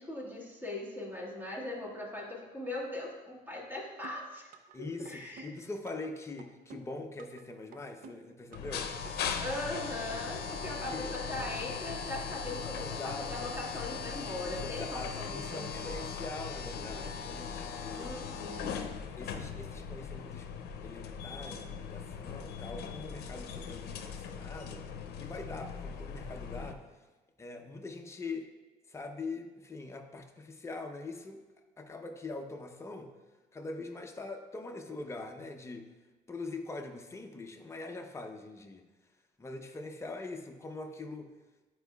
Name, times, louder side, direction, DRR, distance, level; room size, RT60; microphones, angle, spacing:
voice 1, 0.0-4.5 4.8-5.5 9.4-16.3 17.9-18.8, left 1 dB, 10° right, -3 dB, 1.6 m, -40 dB
sound 1, 4.0-4.8 5.1-6.1 6.4-7.4 7.7-8.8 9.1-9.2, right 5 dB, 60° right, 0.6 m, -51 dB
voice 2, 4.7-8.9 10.6-11.1 12.8-13.2 14.6-18.1 19.2-20.5 20.8-24.8 25.2-26.8 27.4-28.5 28.9-31.4 31.8-33.1 33.5-35.9 36.3-38.8 39.4-41.3, left 3 dB, 15° left, 3 dB, 0.7 m, -43 dB
sound 2, 8.5-26.7, left 6 dB, 70° left, 0.6 m, -39 dB
10.0 x 4.6 x 2.3 m, 1.2 s
cardioid pair, 110°, 17 cm